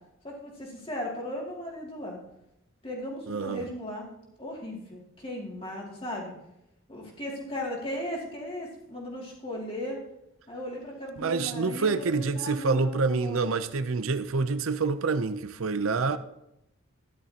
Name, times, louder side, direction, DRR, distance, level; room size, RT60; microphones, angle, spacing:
voice 1, 0.2-2.2 2.8-4.1 4.4-6.4 6.9-10.0 10.5-13.5, left 1 dB, 25° left, 2.4 m, -37 dB
voice 2, 3.3-3.6 11.2-16.2, right 4 dB, 80° right, 0.6 m, -27 dB
13.0 x 11.0 x 2.9 m
head